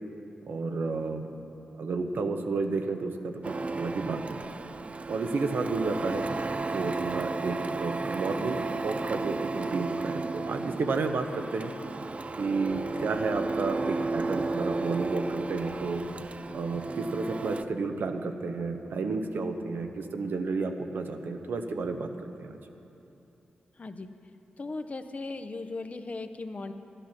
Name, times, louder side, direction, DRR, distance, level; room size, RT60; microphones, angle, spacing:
voice 1, 0.5-1.3 1.8-4.4 5.1-6.2 6.6-11.7 12.4-16.0 16.5-22.1 22.4-22.6, right 4 dB, 80° right, 6 dB, 0.7 m, -31 dB
Printer, 3.4-17.6, right 3 dB, 40° right, 0.4 m, -33 dB
voice 2, 23.8-24.1 24.6-26.7, left 3 dB, 45° left, 8 dB, 0.7 m, -37 dB
11.5 x 10.0 x 5.9 m, 2.9 s
cardioid pair, 55°, 3 cm